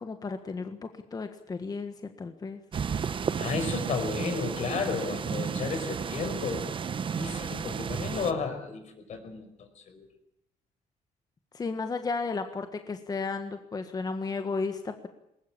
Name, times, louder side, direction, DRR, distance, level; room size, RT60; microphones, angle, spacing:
voice 1, 0.0-2.6 11.5-15.1, left 4 dB, 30° left, 8 dB, 1.5 m, -34 dB
sound 1, 2.7-8.3, right 6 dB, 40° right, 1.0 m, -33 dB
voice 2, 3.4-6.7 7.1-10.1, left 5 dB, 60° left, 7 dB, 5.2 m, -33 dB
20.5 x 20.0 x 8.7 m, 0.79 s
cardioid pair, 120°, 14 cm